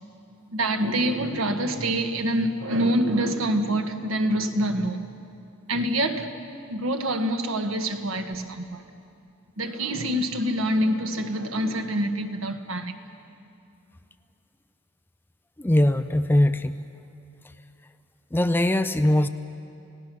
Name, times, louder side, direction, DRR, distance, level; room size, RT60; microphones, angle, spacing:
voice 1, 0.5-5.0 5.7-6.3 6.7-8.8 9.6-12.9, right 1 dB, 70° right, 6 dB, 1.4 m, -26 dB
voice 2, 15.6-16.8 18.3-19.3, left 1 dB, 10° left, 10 dB, 0.5 m, -21 dB
29.0 x 17.5 x 6.2 m, 2.6 s
head